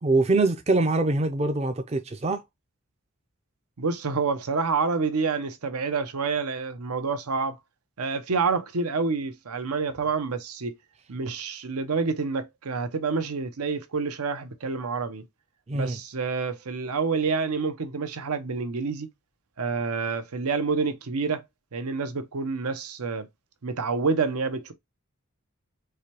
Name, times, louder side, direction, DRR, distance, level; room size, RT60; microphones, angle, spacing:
voice 1, 0.0-2.4 15.7-16.0, right 2 dB, 30° right, 0.4 m, -24 dB
voice 2, 3.8-7.6 8.0-10.8 11.1-15.3 15.7-19.1 19.6-21.4 21.7-23.3 23.6-24.7, right 4 dB, 85° right, 0.7 m, -28 dB
4.8 x 2.2 x 2.9 m
head